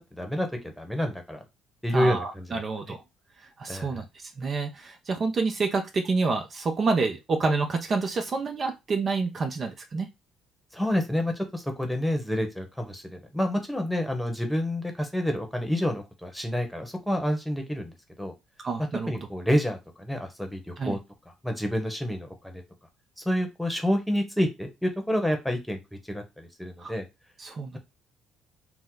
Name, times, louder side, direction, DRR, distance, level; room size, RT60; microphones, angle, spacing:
voice 1, 0.1-1.4 1.8-2.6 3.7-4.0 10.7-17.9 18.2-18.3 19.1-21.0 21.4-22.6 23.2-25.8 26.1-27.1, equal, ahead, 4 dB, 1.0 m, -28 dB
voice 2, 1.9-3.0 3.6-10.1 18.6-19.3 20.8-21.0 26.8-26.9 27.4-27.8, right 4 dB, 45° right, 5 dB, 0.6 m, -28 dB
2.9 x 2.0 x 3.8 m, 0.23 s
supercardioid pair, 65°, 0 cm